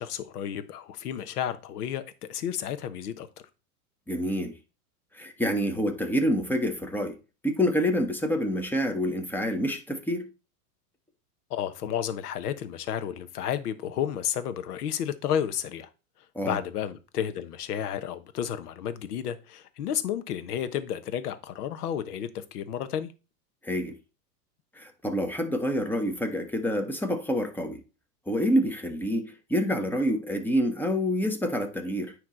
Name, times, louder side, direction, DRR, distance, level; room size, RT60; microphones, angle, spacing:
voice 1, 0.0-3.3 11.5-15.9 16.4-23.1, left 9 dB, 75° left, 1.0 m, -32 dB
voice 2, 4.1-4.5 5.1-7.2 7.4-10.3 16.3-16.6 23.6-24.0 24.7-27.8 28.3-32.1, equal, 5° left, 1.1 m, -27 dB
9.5 x 3.3 x 3.8 m
hypercardioid pair, 110°, 46 cm